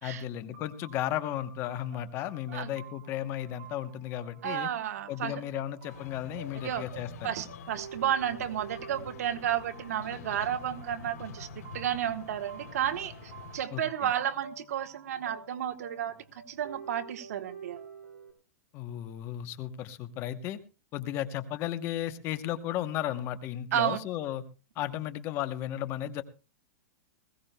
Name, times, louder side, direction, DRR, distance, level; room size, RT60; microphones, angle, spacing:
voice 1, 0.0-4.7 5.1-7.3 13.7-14.1 18.7-20.6 20.9-24.4 24.8-26.2, left 12 dB, 30° left, 12 dB, 0.9 m, -34 dB
sound 1, 0.5-18.3, right 5 dB, 55° right, 2.7 m, -50 dB
voice 2, 4.4-5.4 6.6-6.8 7.2-11.5 11.7-17.8 23.7-24.0, right 10 dB, 75° right, 9 dB, 1.3 m, -32 dB
sound 2, 5.9-13.6, left 5 dB, 85° left, 3.1 m, -47 dB
20.5 x 16.0 x 2.2 m, 0.31 s
supercardioid pair, 165°, 8 cm